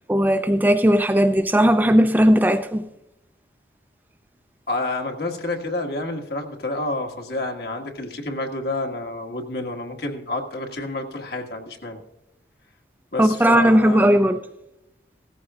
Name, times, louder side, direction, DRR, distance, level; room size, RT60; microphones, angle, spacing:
voice 1, 0.1-2.8 13.2-14.4, equal, 10° right, 0.4 m, -17 dB
voice 2, 4.7-12.0 13.1-14.2, left 2 dB, 60° left, 1.7 m, -29 dB
17.0 x 14.5 x 2.5 m
head